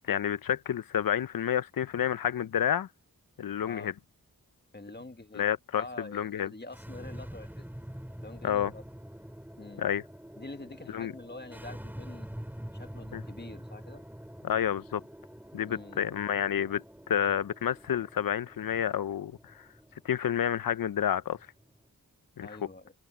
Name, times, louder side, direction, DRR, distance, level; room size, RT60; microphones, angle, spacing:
voice 1, 0.1-2.9 3.4-3.9 5.4-5.8 6.1-6.5 8.4-8.7 9.8-10.0 10.9-11.1 13.1-13.2 14.4-15.0 15.5-19.6 20.0-21.4 22.4-22.5, left 9 dB, 70° left, 0.6 m, -29 dB
voice 2, 4.7-5.5 5.8-7.7 8.2-8.8 9.6-9.9 10.4-12.3 12.7-14.0 15.7-16.0 22.4-22.9, left 2 dB, 30° left, 1.7 m, -46 dB
sound 1, 6.6-21.9, equal, 5° right, 3.0 m, -46 dB
wide cardioid pair, 75°, 35 cm